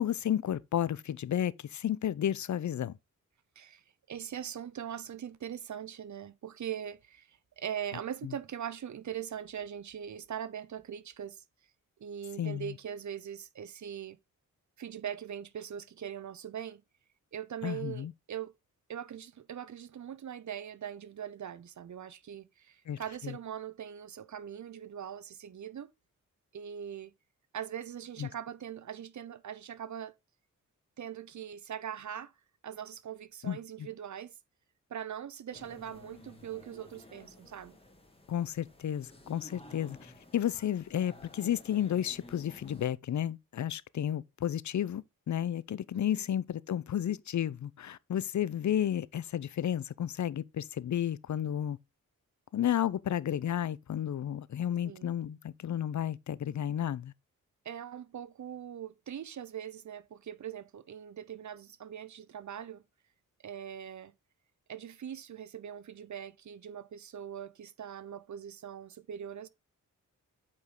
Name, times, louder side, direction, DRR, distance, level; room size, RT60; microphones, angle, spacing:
voice 1, 0.0-2.9 12.4-12.7 17.6-18.1 22.9-23.0 23.2-23.3 28.2-28.3 33.4-33.6 38.3-51.8 52.5-57.1, left 10 dB, 60° left, 0.6 m, -32 dB
voice 2, 4.1-11.4 12.0-14.2 14.8-16.8 17.3-18.5 18.9-25.9 26.5-27.1 27.5-30.1 31.0-32.3 32.6-34.4 34.9-37.8 45.9-46.3 54.8-55.2 57.6-62.8 63.4-64.1 64.7-69.5, right 9 dB, 60° right, 0.7 m, -41 dB
sound 1, 35.5-42.9, left 1 dB, 15° left, 2.4 m, -54 dB
8.5 x 5.3 x 3.8 m
cardioid pair, 70°, 33 cm